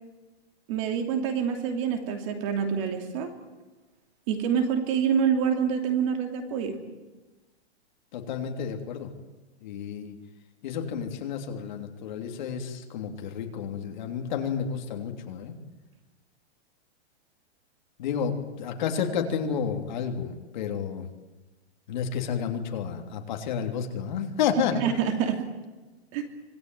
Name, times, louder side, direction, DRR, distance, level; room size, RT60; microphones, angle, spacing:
voice 1, 0.7-3.3 4.3-6.8 24.8-25.5 26.1-26.2, right 7 dB, 30° right, 5 dB, 2.9 m, -26 dB
voice 2, 8.1-9.1 9.6-10.2 10.6-15.6 18.0-21.1 21.9-24.8, left 7 dB, 45° left, 4 dB, 3.2 m, -31 dB
26.0 x 19.5 x 9.3 m, 1.2 s
hypercardioid pair, 175°, 33 cm